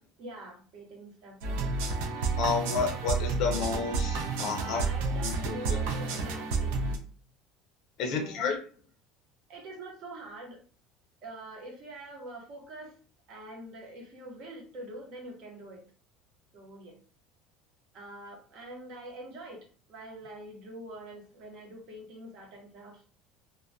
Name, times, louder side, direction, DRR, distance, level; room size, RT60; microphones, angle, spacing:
voice 1, 0.2-1.7 4.6-7.0 8.0-8.4 9.5-10.6 11.2-12.9 13.3-15.8 16.5-16.9 17.9-23.0, right 1 dB, 40° right, -1 dB, 0.8 m, -45 dB
sound 1, 1.4-7.0, right 4 dB, 85° right, 0.5 m, -30 dB
voice 2, 2.4-4.8 5.1-5.8 8.0-8.6, left 5 dB, 45° left, 2 dB, 0.5 m, -31 dB
2.2 x 2.1 x 2.6 m, 0.41 s
cardioid pair, 175°, 0 cm